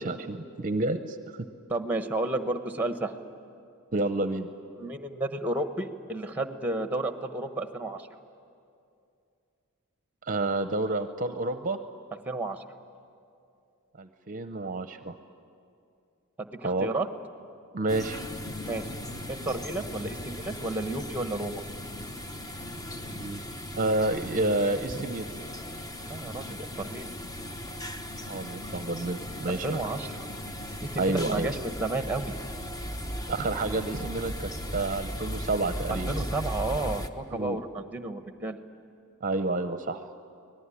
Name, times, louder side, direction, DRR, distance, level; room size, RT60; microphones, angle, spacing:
voice 1, 0.0-1.5 3.9-4.5 10.2-11.8 14.0-15.2 16.6-16.9 17.7-18.2 23.1-23.4 23.7-25.3 28.3-29.8 31.0-31.5 33.3-36.1 37.3-37.6 39.2-40.1, right 2 dB, 35° right, 9 dB, 0.7 m, -29 dB
voice 2, 1.7-3.1 4.8-8.1 12.2-12.6 16.4-17.1 18.7-18.9 19.3-21.6 26.0-27.1 29.5-30.3 30.8-32.3 35.9-38.6, right 2 dB, 10° right, 8 dB, 1.1 m, -32 dB
sound 1, 17.9-37.1, equal, 15° left, 0.8 m, -37 dB
24.5 x 19.0 x 9.9 m, 2.5 s
head